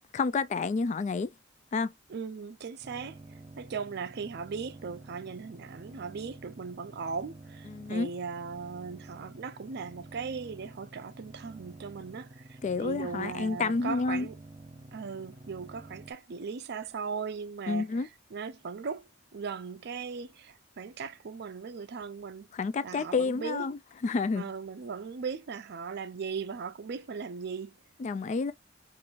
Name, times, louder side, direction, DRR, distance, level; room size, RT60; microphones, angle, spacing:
voice 1, 0.1-1.3 1.7-1.9 7.7-8.1 12.6-14.3 17.7-18.1 22.5-24.5 28.0-28.5, left 4 dB, 40° left, 0.3 m, -29 dB
voice 2, 2.1-3.2 3.6-14.4 14.9-19.0 19.3-22.5 22.8-23.7 24.4-27.7, right 5 dB, 55° right, 0.4 m, -38 dB
sound 1, 2.8-16.1, right 2 dB, 30° right, 1.0 m, -50 dB
4.6 x 2.5 x 2.4 m
head